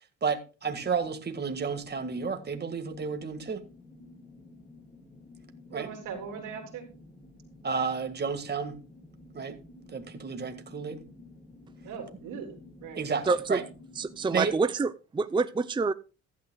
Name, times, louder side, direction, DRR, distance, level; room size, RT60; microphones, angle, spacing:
voice 1, 0.2-3.6 5.7-5.9 7.6-8.8 9.3-9.6 9.9-11.0 13.0-13.6 14.3-14.5, right 5 dB, 35° right, 1.7 m, -31 dB
sound 1, 0.6-14.6, left 2 dB, 25° left, 7.8 m, -52 dB
voice 2, 5.7-6.9 11.8-12.5 12.8-13.0, right 6 dB, 90° right, 3.5 m, -39 dB
voice 3, 13.2-13.6 14.0-15.9, right 4 dB, 15° right, 0.5 m, -27 dB
15.0 x 11.5 x 2.3 m
cardioid pair, 90°, 30 cm